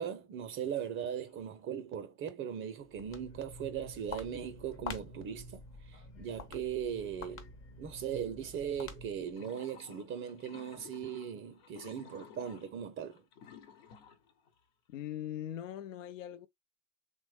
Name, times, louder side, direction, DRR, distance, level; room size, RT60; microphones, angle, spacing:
voice 1, 0.0-7.5 7.8-13.2, right 8 dB, 35° right, 0.5 m, -39 dB
sound 1, 1.3-1.6 2.0-2.1 9.3-14.6, left 7 dB, 60° left, 1.1 m, -56 dB
Walk footsteps, 2.8-9.4, left 3 dB, 35° left, 0.8 m, -47 dB
voice 2, 14.9-16.5, left 11 dB, 80° left, 0.6 m, -41 dB
3.1 x 2.1 x 3.3 m
hypercardioid pair, 90°, 38 cm